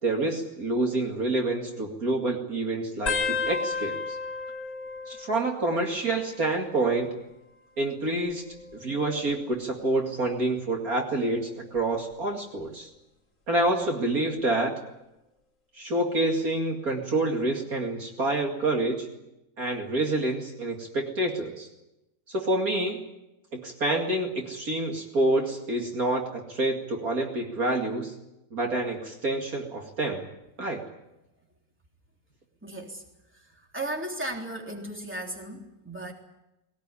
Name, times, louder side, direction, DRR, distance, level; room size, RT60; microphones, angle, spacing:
voice 1, 0.0-4.2 5.1-7.2 7.8-8.5 8.7-12.9 13.5-14.7 15.7-19.1 19.6-21.7 22.3-23.0 23.5-28.1 28.5-30.3 30.6-30.8, right 2 dB, 50° right, 1 dB, 2.7 m, -27 dB
sound 1, 3.1-6.2 6.5-7.1 8.1-9.6 10.2-10.5 11.8-12.1 13.6-13.7, left 4 dB, 45° left, 3.6 m, -34 dB
voice 2, 32.6-33.0 33.3-36.1, right 1 dB, 5° right, 0 dB, 3.4 m, -36 dB
20.5 x 19.0 x 9.9 m, 0.95 s
omnidirectional pair, 1.9 m